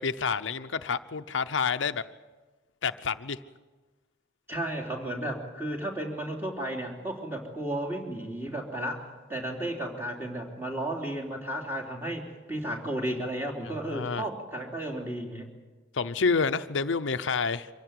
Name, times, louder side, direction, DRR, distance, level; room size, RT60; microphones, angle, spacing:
voice 1, 0.0-2.0 2.8-3.4 13.7-14.2 15.9-17.7, left 5 dB, 80° left, 10 dB, 0.7 m, -28 dB
voice 2, 4.5-15.5, right 1 dB, 10° right, 0 dB, 3.3 m, -33 dB
24.5 x 16.5 x 9.5 m, 1.3 s
head